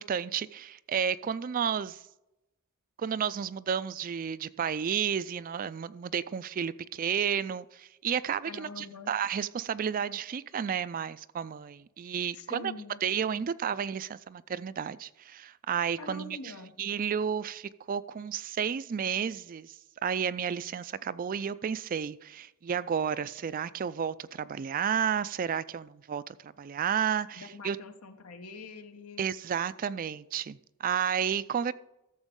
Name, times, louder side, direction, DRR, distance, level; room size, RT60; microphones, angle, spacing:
voice 1, 0.0-2.0 3.0-12.7 13.0-16.4 16.8-19.7 20.0-27.8 29.2-31.7, right 7 dB, 40° right, 0.3 m, -32 dB
voice 2, 8.4-9.1 12.3-13.0 13.3-13.5 16.0-16.7 27.3-29.2, left 3 dB, 85° left, 1.1 m, -44 dB
13.5 x 7.1 x 3.7 m
head